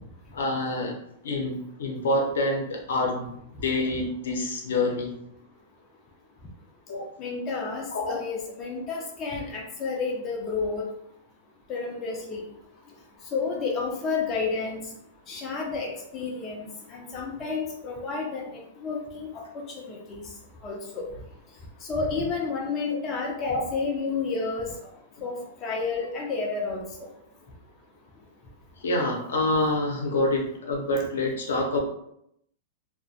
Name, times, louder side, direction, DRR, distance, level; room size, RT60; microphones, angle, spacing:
voice 1, 0.3-0.9 1.2-5.1 6.9-7.1 7.9-8.2 12.1-12.2 22.9-23.0 23.4-23.6 28.8-31.8, left 2 dB, 85° left, -1 dB, 0.7 m, -27 dB
voice 2, 7.2-10.9 11.7-12.4 13.3-14.8 15.3-20.3 20.6-21.0 21.8-24.9 25.2-27.1, left 4 dB, 30° left, -1 dB, 0.5 m, -31 dB
2.5 x 2.2 x 2.4 m, 0.76 s
hypercardioid pair, 130°, 0 cm